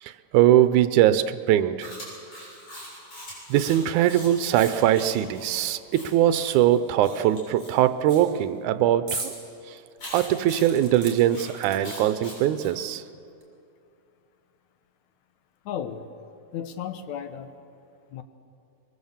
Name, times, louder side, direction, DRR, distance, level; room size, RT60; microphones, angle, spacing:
voice 1, 0.0-1.9 3.5-9.3 9.7-9.8 10.1-13.0, right 12 dB, 85° right, 12 dB, 2.2 m, -21 dB
Chewing mastication, 1.8-8.2 10.0-12.7, left 1 dB, 50° left, 8.4 m, -42 dB
sound 1, 9.1-9.4 9.8-9.9 10.5-12.2 13.1-13.2 13.4-13.5, right 3 dB, 45° right, 4.5 m, -36 dB
voice 2, 15.7-16.1 16.5-17.5 18.1-18.2, left 9 dB, 75° left, 9 dB, 2.3 m, -34 dB
23.0 x 22.5 x 7.3 m, 2.6 s
omnidirectional pair, 3.4 m